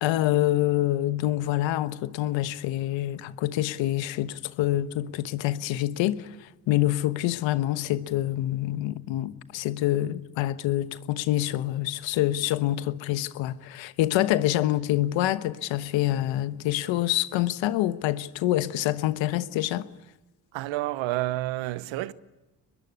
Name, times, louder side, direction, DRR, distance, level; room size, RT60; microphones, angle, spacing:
voice 1, 0.0-19.9, left 14 dB, 75° left, 1.2 m, -26 dB
voice 2, 20.5-22.1, right 16 dB, 80° right, 1.0 m, -29 dB
23.0 x 21.5 x 9.9 m
hypercardioid pair, 55°, 45 cm